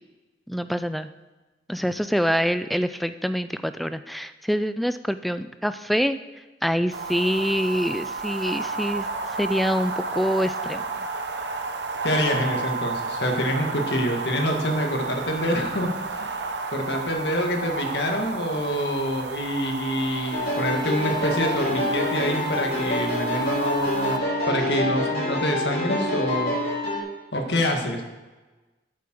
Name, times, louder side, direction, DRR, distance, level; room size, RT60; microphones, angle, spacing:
voice 1, 0.5-1.1 1.7-6.2 6.6-9.1 9.4-11.1, equal, ahead, 11 dB, 0.3 m, -25 dB
sound 1, 6.9-24.2, right 3 dB, 90° right, 0.9 m, -32 dB
voice 2, 12.0-15.9 16.2-16.3 16.7-24.2 24.5-26.5 27.3-28.0, equal, 80° left, 3 dB, 1.7 m, -26 dB
sound 2, 20.3-27.0, left 1 dB, 55° left, 3.8 m, -27 dB
8.4 x 8.4 x 6.2 m, 1.2 s
head